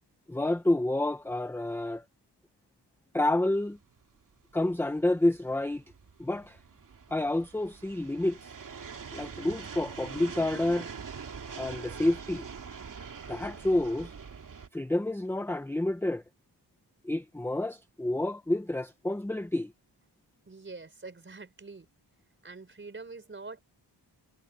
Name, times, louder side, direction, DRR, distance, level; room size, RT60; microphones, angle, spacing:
voice 1, 0.3-2.0 3.1-3.8 4.5-5.8 6.2-6.6 7.1-8.5 9.1-10.9 11.6-12.5 13.3-14.1 14.7-16.2 17.0-19.7, left 1 dB, 5° left, 0.8 m, -29 dB
sound 1, 3.8-14.7, right 6 dB, 50° right, 2.6 m, -44 dB
voice 2, 20.5-21.9 22.4-23.6, right 3 dB, 30° right, 4.7 m, -45 dB
wide cardioid pair, 140°, 42 cm